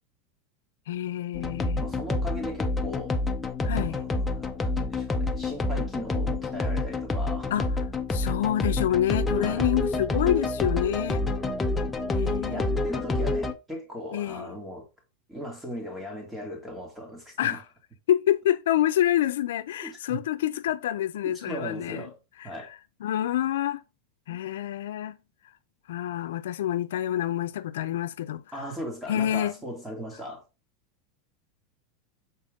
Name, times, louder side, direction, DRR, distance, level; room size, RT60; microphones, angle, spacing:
voice 1, 0.9-1.8 3.6-4.0 7.5-7.7 8.1-11.2 12.1-12.8 14.1-14.6 17.4-17.6 18.1-22.1 22.4-22.7 23.0-23.8 24.3-25.2 25.9-28.4 29.1-29.5, left 12 dB, 90° left, 0.5 m, -27 dB
sound 1, 1.3-13.5, left 2 dB, 10° left, 0.7 m, -28 dB
voice 2, 1.8-3.2 3.6-7.5 9.4-9.7 11.1-12.0 12.5-14.9 15.3-17.6 19.8-20.2 21.2-22.1 22.4-22.7 24.3-24.4 28.5-30.4, equal, 10° right, 2.5 m, -38 dB
6.8 x 4.3 x 3.7 m
supercardioid pair, 150°, 0 cm